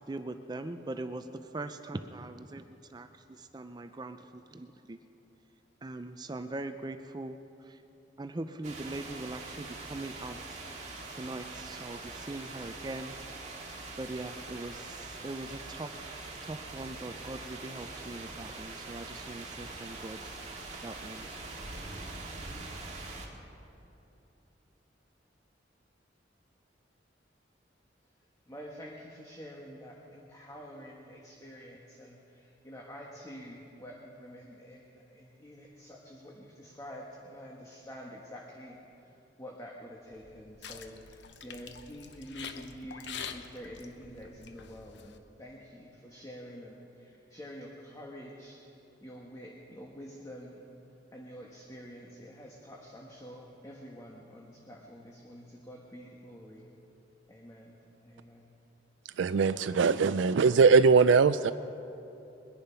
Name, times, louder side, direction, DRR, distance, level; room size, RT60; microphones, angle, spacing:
voice 1, 0.1-5.0 5.8-7.8 8.2-10.6 11.1-13.1 14.0-20.3 20.8-21.3, right 2 dB, 20° right, 8 dB, 0.4 m, -41 dB
sound 1, 8.6-23.3, right 3 dB, 40° right, 1.9 m, -43 dB
voice 2, 28.5-39.1 39.4-48.6 49.0-50.6 51.1-56.7 57.3-57.8 58.0-58.5, equal, 20° left, -2 dB, 1.3 m, -47 dB
sound 2, 40.1-45.2, left 6 dB, 70° left, 0.9 m, -46 dB
voice 3, 59.2-61.5, right 5 dB, 85° right, 12 dB, 0.4 m, -21 dB
22.0 x 10.5 x 5.6 m, 2.9 s
head